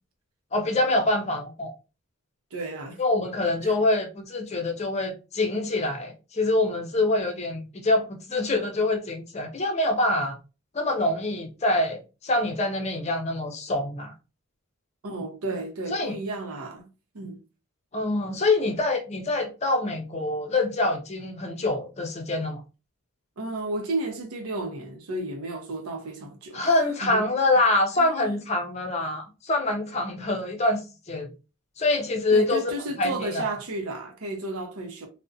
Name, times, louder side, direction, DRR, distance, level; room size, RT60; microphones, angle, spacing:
voice 1, 0.5-1.7 3.0-10.3 10.7-14.1 15.9-16.2 17.9-22.6 26.5-31.3 31.8-32.7 33.0-33.5, left 2 dB, 30° left, 0.5 m, -25 dB
voice 2, 2.5-3.0 3.6-3.7 15.0-16.9 17.1-17.4 23.4-26.7 27.0-27.3 28.0-28.4 32.3-35.1, right 2 dB, 90° right, 0.6 m, -33 dB
2.5 x 2.1 x 2.5 m
head